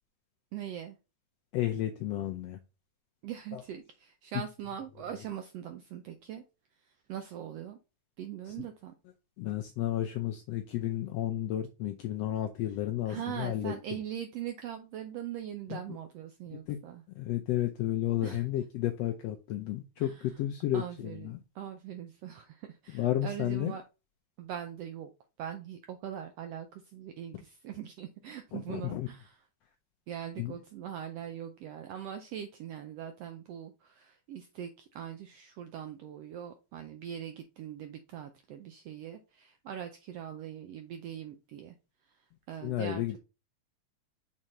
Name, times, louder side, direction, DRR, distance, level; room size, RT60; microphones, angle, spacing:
voice 1, 0.5-1.0 3.2-6.4 6.8-7.8 8.2-8.9 13.1-17.0 18.2-18.4 20.0-20.2 20.7-21.3 21.5-23.8 24.4-25.1 25.4-29.4 30.1-41.7 42.0-43.2, right 10 dB, 80° right, 6 dB, 1.4 m, -41 dB
voice 2, 1.5-2.6 3.5-3.6 8.5-8.6 9.4-13.7 15.7-15.8 16.5-16.8 17.2-21.4 22.9-23.7 28.5-29.1 30.4-30.5 42.6-43.2, left 13 dB, 80° left, 5 dB, 1.4 m, -32 dB
6.4 x 3.7 x 4.2 m, 0.28 s
omnidirectional pair, 3.6 m